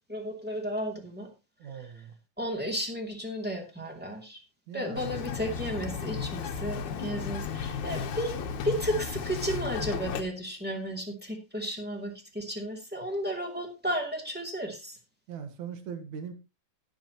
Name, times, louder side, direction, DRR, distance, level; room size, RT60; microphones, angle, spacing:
voice 1, 0.1-1.3 1.8-1.9 2.4-4.4 4.7-8.4 8.6-15.0, equal, 5° right, 2 dB, 2.2 m, -33 dB
voice 2, 1.6-2.1 4.7-5.1 15.3-16.3, right 7 dB, 70° right, 7 dB, 2.8 m, -40 dB
Bird vocalization bird call bird song, 5.0-10.2, left 6 dB, 75° left, 2.5 m, -34 dB
17.5 x 7.5 x 3.0 m, 0.27 s
omnidirectional pair, 3.5 m